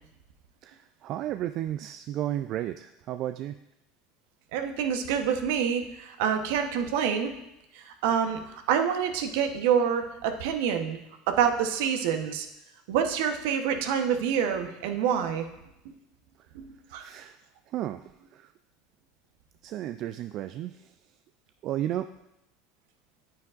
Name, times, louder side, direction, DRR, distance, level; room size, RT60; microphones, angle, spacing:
voice 1, 0.6-3.6 16.9-17.4 17.7-18.5 19.6-20.9 21.6-22.1, right 12 dB, 50° right, 10 dB, 0.3 m, -33 dB
voice 2, 4.5-7.3 8.0-8.4 8.7-11.0 11.3-12.5 12.9-15.5 15.8-15.9 16.5-17.0, right 8 dB, 70° right, 6 dB, 0.9 m, -27 dB
9.7 x 9.1 x 2.5 m, 0.87 s
hypercardioid pair, 80°, 0 cm